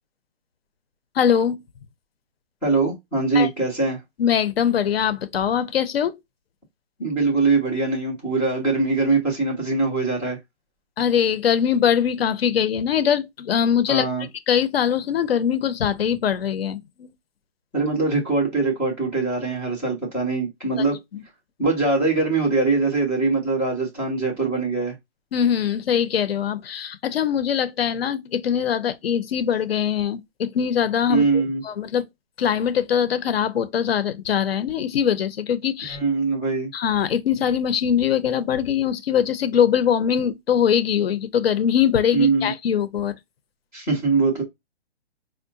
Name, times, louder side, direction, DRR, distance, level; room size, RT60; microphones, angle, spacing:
voice 1, 1.1-1.6 3.3-3.5 4.2-6.2 11.0-17.1 20.7-20.8 21.1-21.2 25.3-31.2 31.6-32.0 32.4-36.0 36.7-43.2, left 8 dB, 60° left, 0.6 m, -22 dB
voice 2, 2.6-4.0 7.0-10.4 13.9-14.3 17.7-21.0 21.6-25.0 31.1-31.6 35.9-36.7 42.1-42.5 43.7-44.4, right 3 dB, ahead, 0.3 m, -22 dB
4.7 x 2.1 x 2.5 m
hypercardioid pair, 140°, 33 cm